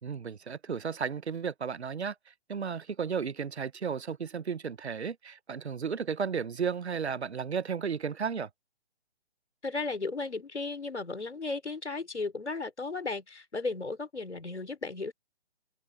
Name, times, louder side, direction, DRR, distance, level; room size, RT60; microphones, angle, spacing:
voice 1, 0.0-8.5, right 6 dB, 75° right, 1.2 m, -34 dB
voice 2, 9.6-15.1, left 3 dB, 90° left, 4.6 m, -35 dB
open air
figure-of-eight pair, 145°, 33 cm